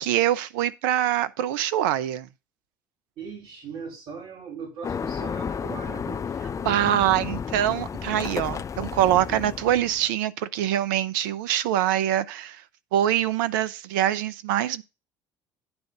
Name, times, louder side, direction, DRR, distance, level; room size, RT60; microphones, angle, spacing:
voice 1, 0.0-2.3 6.6-12.6 12.9-14.8, right 12 dB, 75° right, 0.8 m, -24 dB
voice 2, 3.2-6.2 10.0-10.1, right 5 dB, 60° right, 3.5 m, -39 dB
sound 1, 4.8-10.1, left 6 dB, 30° left, 0.5 m, -32 dB
9.5 x 3.9 x 6.6 m
hypercardioid pair, 65°, 11 cm